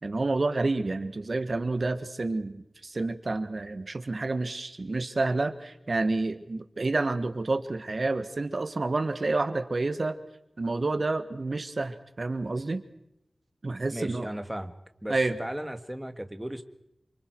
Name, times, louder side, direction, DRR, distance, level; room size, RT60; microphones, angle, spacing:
voice 1, 0.0-10.2 10.6-12.8 13.6-14.3 15.1-15.3, right 3 dB, 55° right, 9 dB, 1.5 m, -29 dB
voice 2, 13.9-14.7 15.0-16.6, right 1 dB, 10° right, 8 dB, 1.7 m, -36 dB
28.5 x 25.5 x 4.7 m, 0.83 s
wide cardioid pair, 75°, 0 cm